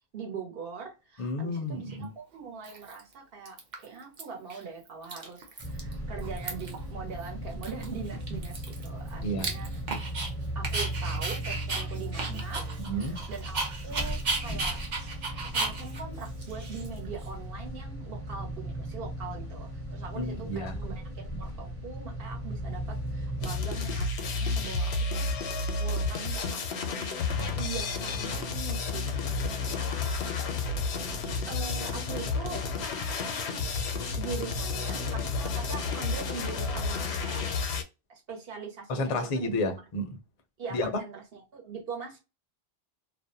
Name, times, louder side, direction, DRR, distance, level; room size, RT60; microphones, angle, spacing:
voice 1, 0.1-9.7 10.5-12.6 13.0-14.8 15.4-27.0 27.4-29.1 31.5-32.6 34.2-37.5 38.1-39.5 40.6-42.2, right 5 dB, 65° right, 1.1 m, -42 dB
voice 2, 1.2-2.2 9.2-9.5 12.8-13.2 20.2-20.8 38.9-40.2 40.7-41.0, left 1 dB, 45° left, 0.4 m, -31 dB
Dog, 1.9-2.0 2.6-3.1 3.5-4.2 4.5-4.6 4.9-5.9 6.2-6.8 7.2-7.3 7.6-10.3 10.6-17.3, right 3 dB, 50° right, 0.7 m, -35 dB
sound 1, 5.6-23.6, right 1 dB, 15° right, 0.7 m, -37 dB
sound 2, 23.4-37.8, left 4 dB, 85° left, 0.8 m, -31 dB
2.4 x 2.1 x 2.6 m
omnidirectional pair, 1.1 m